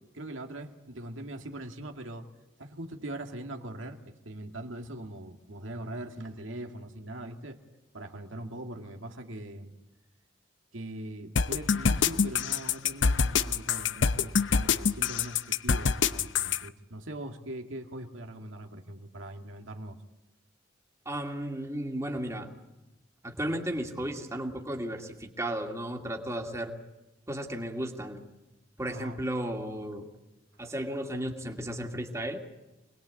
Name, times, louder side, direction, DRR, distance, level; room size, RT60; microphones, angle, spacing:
voice 1, 0.0-2.3 2.6-7.6 7.9-9.7 10.7-20.0 28.9-29.2, right 1 dB, 85° right, 4 dB, 2.1 m, -41 dB
sound 1, 11.4-16.6, left 5 dB, 70° left, 0.8 m, -25 dB
voice 2, 21.1-22.5 23.2-26.7 27.3-28.2 28.8-30.1 30.6-32.4, right 1 dB, 15° right, 2 dB, 2.4 m, -34 dB
26.5 x 20.5 x 8.5 m, 1.0 s
head